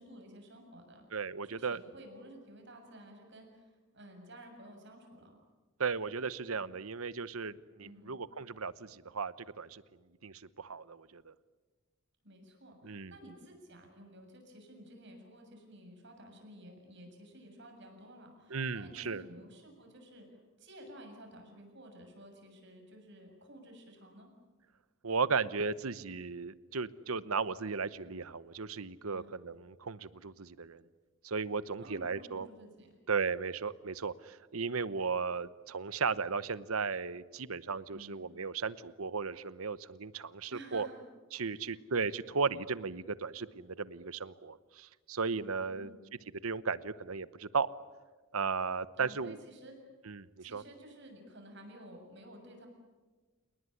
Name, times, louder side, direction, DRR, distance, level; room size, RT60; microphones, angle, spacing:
voice 1, 0.0-1.1 1.4-5.4 7.8-8.2 12.2-24.3 29.1-29.3 31.8-32.9 37.9-38.2 40.5-41.0 41.5-41.8 45.6-46.0 48.9-49.7 50.4-52.7, right 1 dB, 55° right, 3 dB, 7.1 m, -53 dB
voice 2, 1.1-1.8 5.8-9.8 10.2-11.3 12.8-13.1 18.5-19.2 25.0-30.8 31.2-32.5 33.1-40.9 41.3-45.9 46.4-47.7 48.3-49.4 50.1-50.6, right 5 dB, 85° right, 16 dB, 1.0 m, -35 dB
29.0 x 19.5 x 9.9 m, 1.3 s
head